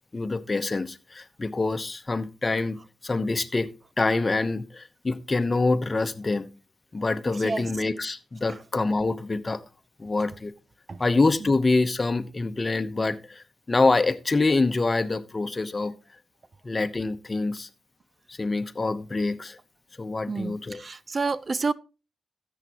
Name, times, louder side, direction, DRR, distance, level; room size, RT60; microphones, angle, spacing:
voice 1, 0.1-3.7 4.0-6.5 6.9-9.6 10.0-10.5 11.0-15.9 16.6-17.7 18.3-19.6 20.0-20.8, left 3 dB, 35° left, 0.9 m, -26 dB
voice 2, 7.3-7.7 8.4-8.6 10.9-11.0 11.4-11.5 20.3-21.7, right 4 dB, 45° right, 0.5 m, -30 dB
13.5 x 8.2 x 2.9 m
supercardioid pair, 50°, 0 cm